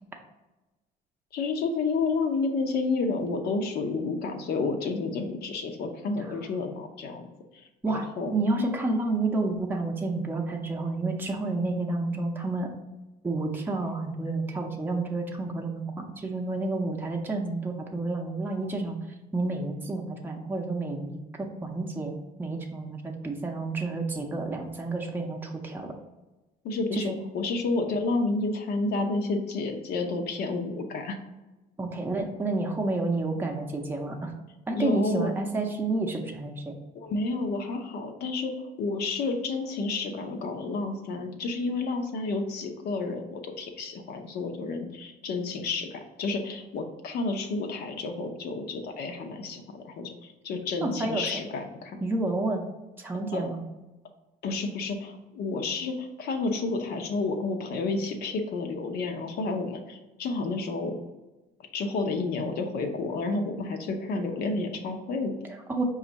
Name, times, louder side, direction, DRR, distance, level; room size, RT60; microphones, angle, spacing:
voice 1, 1.3-7.3 7.9-8.3 26.6-31.2 34.8-35.3 36.9-52.1 53.3-53.5 54.4-61.0 61.7-65.4, left 3 dB, 70° left, 4 dB, 0.8 m, -30 dB
voice 2, 7.8-12.7 13.2-19.0 19.3-25.9 26.9-27.2 31.8-34.3 34.7-36.7 50.8-51.3 52.0-52.6 53.0-53.6 65.5-65.8, right 2 dB, 10° right, 1 dB, 0.6 m, -30 dB
5.2 x 2.4 x 4.0 m, 1.1 s
cardioid pair, 110°, 17 cm